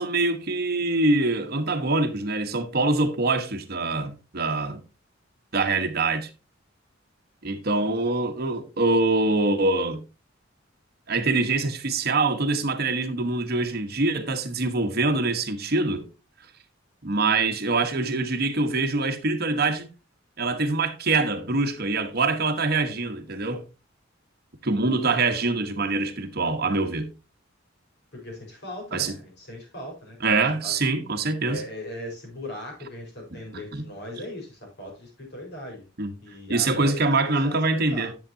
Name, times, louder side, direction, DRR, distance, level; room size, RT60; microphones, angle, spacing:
voice 1, 0.0-4.8 5.5-6.3 7.4-10.0 11.1-16.1 17.0-19.9 20.4-23.6 24.6-27.1 28.9-29.1 30.2-31.6 33.5-33.8 36.0-36.1 36.5-38.1, right 3 dB, 50° right, 1.2 m, -24 dB
voice 2, 28.1-30.8 31.4-35.9 36.2-38.1, left 1 dB, 60° left, 4.7 m, -39 dB
11.0 x 7.3 x 2.7 m
head